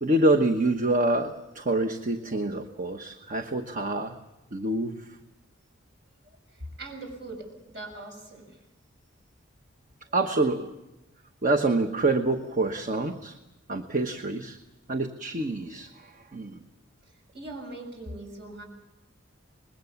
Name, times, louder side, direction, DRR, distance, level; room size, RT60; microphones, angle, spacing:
voice 1, 0.0-4.2 4.5-5.0 10.1-10.7 11.4-13.4 13.7-14.6 14.9-16.6, right 2 dB, 40° right, 6 dB, 1.1 m, -26 dB
voice 2, 6.8-8.5 17.3-18.6, right 2 dB, 60° right, 3 dB, 6.8 m, -41 dB
25.5 x 21.0 x 7.2 m, 0.95 s
head